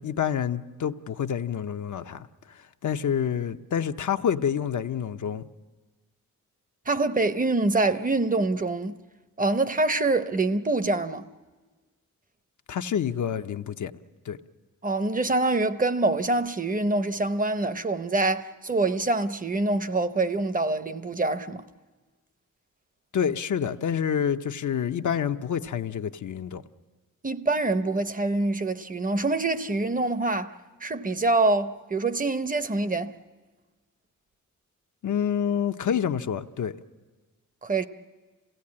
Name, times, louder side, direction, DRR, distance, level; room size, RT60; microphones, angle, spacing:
voice 1, 0.0-5.5 12.7-13.9 14.3-14.4 23.1-26.6 35.0-36.7, left 8 dB, 70° left, 0.7 m, -28 dB
voice 2, 6.9-9.0 9.4-11.3 14.8-21.6 27.2-30.5 30.8-33.1 37.6-37.9, right 2 dB, 25° right, 0.7 m, -25 dB
27.5 x 17.0 x 8.6 m
wide cardioid pair, 115°, 31 cm